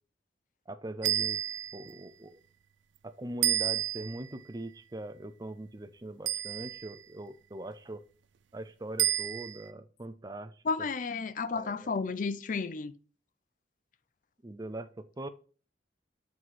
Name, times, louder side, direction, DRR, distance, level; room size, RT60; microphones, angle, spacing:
voice 1, 0.7-1.4 1.7-2.4 3.0-8.0 8.5-10.6 11.5-11.9 14.4-15.3, right 1 dB, 20° right, 0.5 m, -41 dB
sound 1, 1.0-1.9 3.4-4.3 6.3-7.0 9.0-9.7, right 12 dB, 90° right, 0.5 m, -30 dB
voice 2, 10.6-12.9, left 4 dB, 45° left, 0.4 m, -32 dB
7.9 x 4.0 x 4.6 m
head